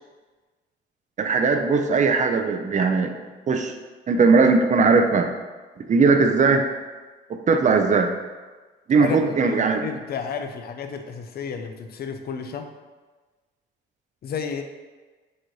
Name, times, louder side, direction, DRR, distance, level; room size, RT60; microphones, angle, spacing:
voice 1, 1.2-3.1 3.5-3.7 4.1-5.3 5.8-6.7 7.3-8.1 8.9-9.8, right 4 dB, 40° right, 5 dB, 0.5 m, -19 dB
voice 2, 9.0-12.7 14.2-14.6, left 6 dB, 50° left, 6 dB, 0.5 m, -32 dB
4.1 x 2.5 x 4.6 m, 1.3 s
cardioid pair, 90°, 20 cm